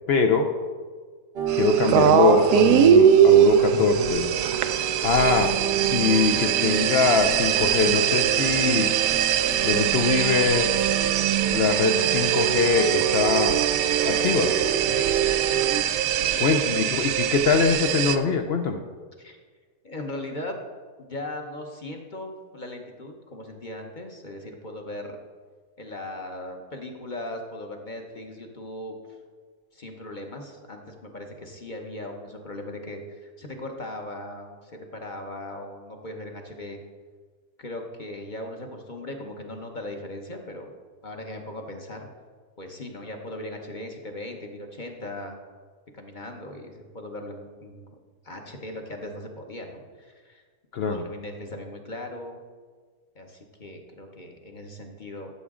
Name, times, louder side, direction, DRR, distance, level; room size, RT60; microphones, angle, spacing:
voice 1, 0.1-0.5 1.5-4.3 5.0-5.5 5.9-8.9 9.6-10.8 11.5-13.6 14.0-14.5 16.4-18.8 50.7-51.0, left 5 dB, 65° left, 6 dB, 0.6 m, -23 dB
sound 1, 1.4-15.8, right 10 dB, 50° right, 0.7 m, -29 dB
sound 2, 1.5-18.2, right 9 dB, 90° right, 1.1 m, -22 dB
voice 2, 14.1-15.7 16.1-16.7 19.2-19.4 19.8-20.6 21.0-25.2 25.8-29.2 29.7-36.8 37.6-40.7 41.0-42.1 42.6-45.4 45.9-47.8 48.2-50.4 50.9-52.4 53.1-55.3, left 1 dB, 35° left, 2 dB, 0.9 m, -38 dB
13.5 x 7.0 x 3.7 m, 1.5 s
omnidirectional pair, 1.6 m